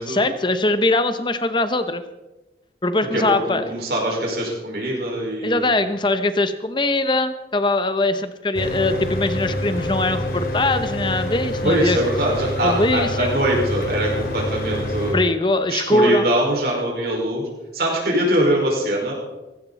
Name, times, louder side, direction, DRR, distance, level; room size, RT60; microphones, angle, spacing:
voice 1, 0.1-2.0 2.8-3.7 5.4-12.0 12.6-13.3 15.1-16.3, left 2 dB, 25° left, 10 dB, 0.9 m, -21 dB
voice 2, 3.1-5.7 11.6-15.2 15.7-17.4 17.7-19.1, right 1 dB, 60° right, -2 dB, 5.2 m, -22 dB
Mechanical fan, 8.5-15.2, left 1 dB, 55° left, 2.7 m, -26 dB
18.5 x 16.5 x 4.2 m, 1.1 s
head